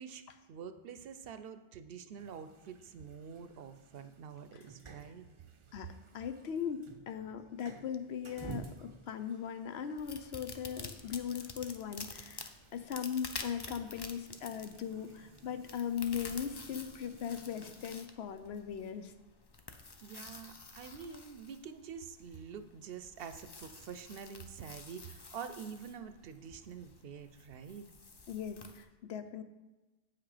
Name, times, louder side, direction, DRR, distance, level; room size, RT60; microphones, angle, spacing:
voice 1, 0.5-5.3 20.0-27.8, right 6 dB, 65° right, 10 dB, 0.8 m, -47 dB
sound 1, 2.2-18.0, right 5 dB, 40° right, 0.5 m, -54 dB
voice 2, 5.7-19.1 28.3-29.4, left 8 dB, 75° left, 9 dB, 0.9 m, -39 dB
sound 2, 10.0-28.8, left 3 dB, 30° left, 0.5 m, -50 dB
8.3 x 5.9 x 4.9 m, 1.2 s
omnidirectional pair, 1.1 m